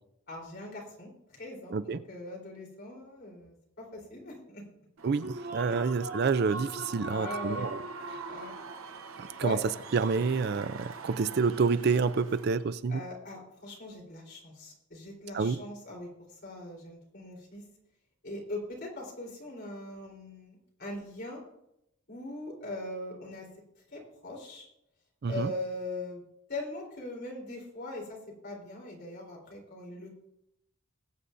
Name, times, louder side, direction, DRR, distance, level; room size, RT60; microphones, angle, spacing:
voice 1, 0.3-4.6 5.7-5.8 7.0-7.7 8.2-8.5 9.4-9.6 12.9-17.6 18.2-21.4 22.1-23.5 23.9-24.7 25.3-30.1, left 2 dB, 50° left, -2 dB, 3.7 m, -41 dB
voice 2, 5.0-7.8 9.2-9.6 9.9-13.0 15.3-15.6 25.2-25.5, right 5 dB, 50° right, 14 dB, 0.4 m, -28 dB
Human voice / Cheering / Applause, 5.0-12.6, right 3 dB, 75° right, 1.0 m, -42 dB
21.0 x 8.1 x 2.6 m, 0.80 s
head